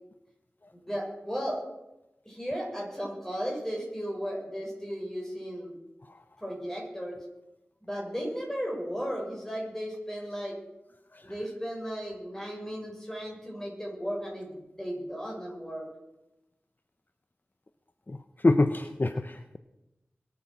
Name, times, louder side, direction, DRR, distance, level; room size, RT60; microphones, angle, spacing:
voice 1, 0.7-1.6 2.3-5.7 6.4-7.2 7.8-10.6 11.2-15.9, equal, 10° left, -1 dB, 6.9 m, -35 dB
voice 2, 18.4-19.6, left 2 dB, 40° left, 9 dB, 0.8 m, -25 dB
22.0 x 8.6 x 6.0 m, 0.93 s
wide cardioid pair, 45°, 5 cm